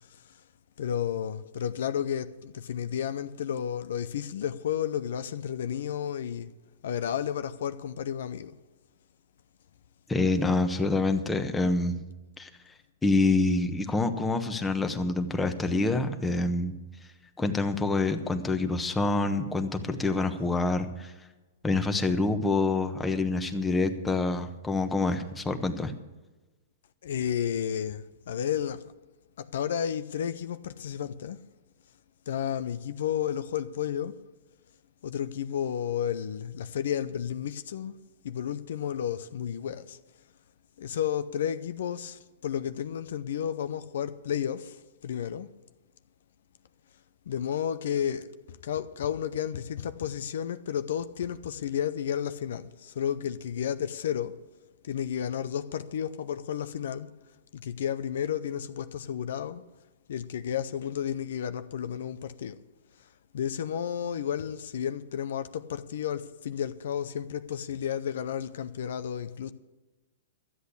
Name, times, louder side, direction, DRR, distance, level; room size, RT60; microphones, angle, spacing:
voice 1, 0.8-6.5 6.8-8.6 27.0-28.8 29.4-31.4 32.3-34.2 35.0-38.0 38.2-40.0 40.8-45.5 47.3-54.4 54.8-57.1 57.5-59.6 60.1-62.6 63.0-63.1 63.3-69.5, left 9 dB, 70° left, 0.6 m, -32 dB
voice 2, 10.1-12.0 12.4-12.5 13.0-16.7 17.4-21.1 21.6-25.9, left 3 dB, 10° left, 1.1 m, -26 dB
12.5 x 8.2 x 8.4 m
hypercardioid pair, 125°, 0 cm